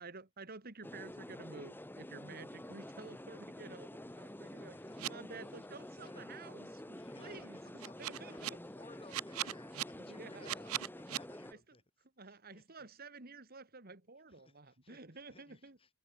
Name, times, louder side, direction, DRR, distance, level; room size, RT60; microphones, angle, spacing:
voice 1, 0.0-4.8 5.1-8.6 10.1-10.5 12.2-15.8, right 3 dB, 45° right, 2.3 m, -51 dB
sound 1, 0.8-11.5, left 1 dB, 10° left, 1.3 m, -49 dB
voice 2, 4.0-5.1 5.4-6.3 6.9-11.8 12.2-12.9 14.3-15.9, left 2 dB, 25° left, 5.9 m, -61 dB
sound 2, 5.0-5.1 7.8-8.5 9.1-9.8 10.4-11.2, right 13 dB, 80° right, 0.5 m, -38 dB
head